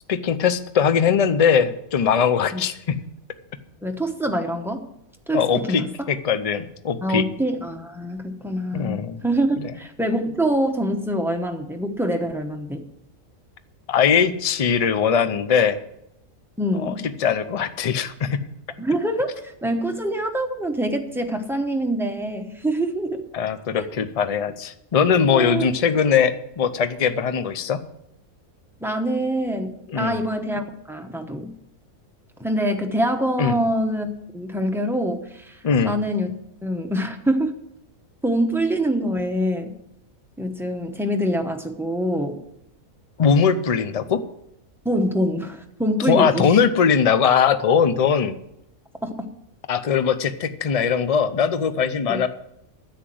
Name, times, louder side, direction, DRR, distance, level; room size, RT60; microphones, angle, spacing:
voice 1, 0.1-3.0 5.3-7.2 8.7-9.2 9.6-9.7 13.9-15.8 16.8-16.9 17.2-18.4 23.3-27.8 29.9-30.2 33.4-33.6 35.6-36.0 43.2-44.2 46.1-48.4 49.7-52.3, left 7 dB, 45° left, 12 dB, 0.5 m, -20 dB
voice 2, 3.8-4.9 5.3-5.9 7.0-12.8 16.6-17.0 18.8-23.2 23.8-23.9 25.3-25.7 28.8-31.5 32.4-34.1 34.3-35.6 35.8-36.3 36.6-37.5 38.2-39.7 40.4-42.4 44.8-46.6 49.0-49.1 52.1-52.2, right 1 dB, ahead, 3 dB, 0.8 m, -25 dB
10.0 x 8.0 x 7.7 m, 0.82 s
omnidirectional pair, 1.5 m